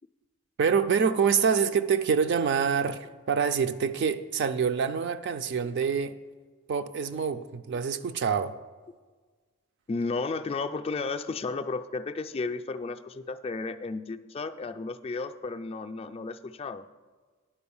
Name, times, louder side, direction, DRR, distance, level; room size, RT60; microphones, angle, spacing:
voice 1, 0.6-6.2 6.7-8.5, right 6 dB, 50° right, 9 dB, 0.4 m, -26 dB
voice 2, 9.9-16.9, left 3 dB, 25° left, 8 dB, 0.3 m, -33 dB
10.0 x 4.7 x 7.0 m, 1.4 s
head